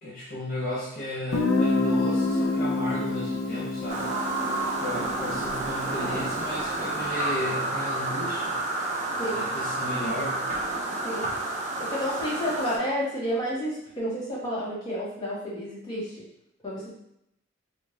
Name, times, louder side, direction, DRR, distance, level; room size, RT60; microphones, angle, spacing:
voice 1, 0.0-4.1 4.6-8.6 9.2-10.5, equal, 45° left, -7 dB, 0.7 m, -34 dB
Guitar, 1.3-6.9, left 2 dB, 85° left, 0.5 m, -28 dB
sound 1, 3.9-12.8, right 2 dB, 35° right, 0.5 m, -30 dB
voice 2, 11.8-16.2 16.6-16.9, equal, 20° left, -8 dB, 1.4 m, -30 dB
3.5 x 2.2 x 3.2 m, 0.77 s
head